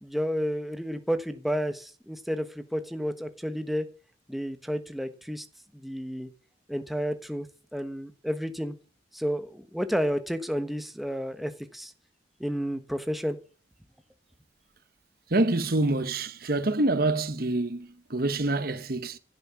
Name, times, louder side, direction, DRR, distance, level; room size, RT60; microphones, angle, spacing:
voice 1, 0.0-3.9 4.3-5.5 5.7-6.3 6.7-7.5 7.7-8.7 9.1-11.9 12.4-13.4, equal, ahead, 1.2 m, -31 dB
voice 2, 15.3-19.2, right 2 dB, 55° right, 1.2 m, -26 dB
15.5 x 11.0 x 7.0 m
head